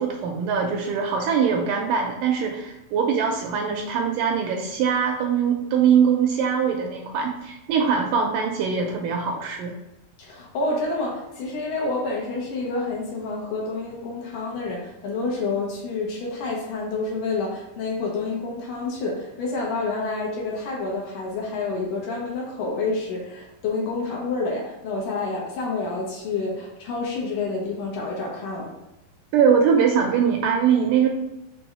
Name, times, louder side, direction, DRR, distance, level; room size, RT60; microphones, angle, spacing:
voice 1, 0.0-9.8 29.3-31.1, right 7 dB, 80° right, 2 dB, 2.0 m, -22 dB
voice 2, 10.2-28.7, left 3 dB, 70° left, -2 dB, 2.5 m, -28 dB
6.2 x 3.4 x 4.7 m, 0.95 s
omnidirectional pair, 4.3 m